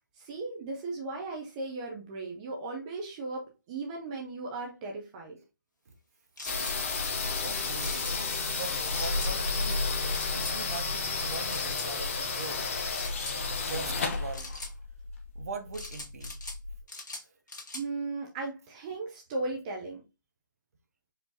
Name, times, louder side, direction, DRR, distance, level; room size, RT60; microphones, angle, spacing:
voice 1, 0.1-5.4 17.7-20.0, right 3 dB, 20° right, 0.7 m, -36 dB
sound 1, 6.4-6.8 7.8-8.1 8.9-9.3 10.1-10.6 11.5-11.9 12.9-13.4 14.3-14.7 15.7-16.6 16.9-17.8, left 2 dB, 60° left, 1.8 m, -42 dB
sound 2, 6.5-16.8, left 4 dB, 40° left, 0.9 m, -32 dB
voice 2, 7.4-9.9 10.3-12.7 13.6-14.5 15.3-16.3 17.2-17.3, right 4 dB, 45° right, 1.0 m, -41 dB
4.8 x 3.6 x 2.8 m
figure-of-eight pair, 150°, 11 cm